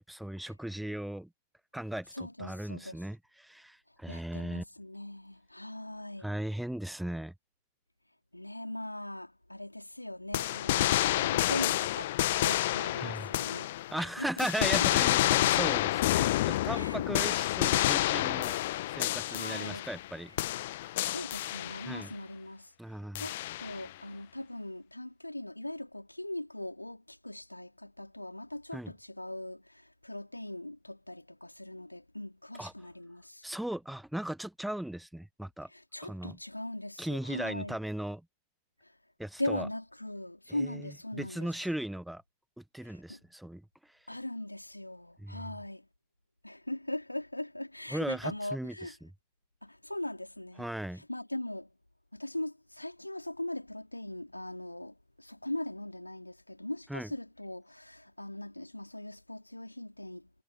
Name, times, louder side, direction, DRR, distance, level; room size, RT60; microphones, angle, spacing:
voice 1, 0.1-1.3 1.7-4.6 6.2-7.3 13.0-13.3 13.9-18.6 18.9-20.3 20.8-21.0 21.9-22.1 22.8-23.3 28.7-28.9 32.6-32.7 33.4-35.7 36.0-36.4 37.0-38.2 39.2-39.7 40.5-42.2 42.6-43.6 43.9-44.0 45.2-45.5 47.9-49.1 50.6-51.0 56.9-57.1, right 1 dB, ahead, 0.9 m, -37 dB
voice 2, 2.1-3.0 4.1-6.3 8.3-13.7 14.0-14.9 16.7-17.3 19.3-19.8 20.4-20.6 21.1-22.7 23.2-33.5 35.7-37.8 38.8-38.9 39.4-41.5 42.8-43.2 44.1-45.9 46.4-48.9 49.6-50.7 51.0-51.7 52.1-60.4, left 1 dB, 85° left, 3.3 m, -40 dB
sound 1, 10.3-14.0 14.4-20.1 20.4-22.0 23.1-23.9, left 15 dB, 55° left, 1.1 m, -29 dB
figure-of-eight pair, 90°, 0 cm